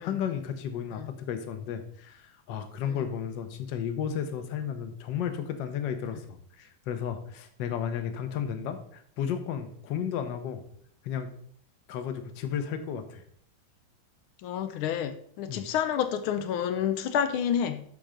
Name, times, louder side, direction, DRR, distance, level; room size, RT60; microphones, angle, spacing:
voice 1, 0.0-10.6 11.0-11.3 11.9-13.2 15.5-15.7, left 8 dB, 65° left, 1.5 m, -33 dB
voice 2, 14.4-17.8, left 9 dB, 90° left, 1.5 m, -29 dB
12.0 x 4.6 x 5.1 m
omnidirectional pair, 2.3 m